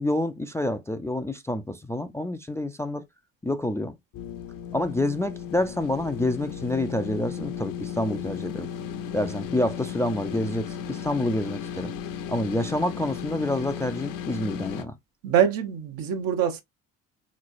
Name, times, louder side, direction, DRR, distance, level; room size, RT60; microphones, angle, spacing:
voice 1, 0.0-3.0 3.4-4.0 4.7-8.7 9.1-11.9 12.3-14.9, left 1 dB, 5° left, 0.4 m, -28 dB
sound 1, 4.1-14.8, left 8 dB, 55° left, 0.7 m, -35 dB
voice 2, 15.2-16.6, right 9 dB, 55° right, 0.9 m, -24 dB
3.7 x 3.1 x 2.5 m
hypercardioid pair, 55°, 40 cm